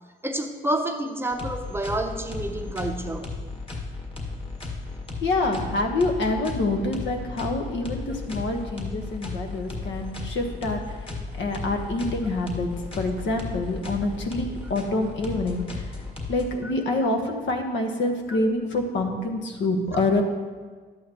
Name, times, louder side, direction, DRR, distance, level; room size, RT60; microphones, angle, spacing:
voice 1, 0.2-3.3 16.6-16.7, right 1 dB, 10° right, 4 dB, 0.7 m, -29 dB
sound 1, 1.3-16.5, left 3 dB, 25° left, 1.7 m, -35 dB
voice 2, 5.2-11.0 11.4-12.7 12.9-15.8 16.3-20.2, left 2 dB, 65° left, 3 dB, 1.2 m, -26 dB
11.5 x 8.4 x 3.0 m, 1.5 s
cardioid pair, 90°, 20 cm